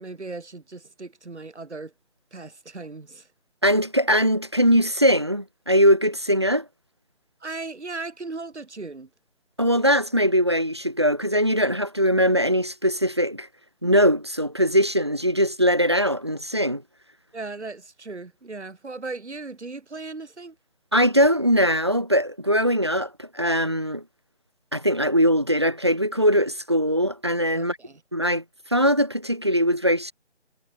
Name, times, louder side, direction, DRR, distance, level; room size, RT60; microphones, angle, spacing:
voice 1, 0.0-1.9 2.3-3.3 7.4-9.1 17.3-20.6 27.5-28.0, right 3 dB, 75° right, 4.5 m, -37 dB
voice 2, 3.6-6.7 9.6-13.5 13.8-16.8 20.9-24.0 24.7-27.8 28.1-28.4 28.7-30.1, equal, 25° right, 0.8 m, -21 dB
figure-of-eight pair, 175°, 34 cm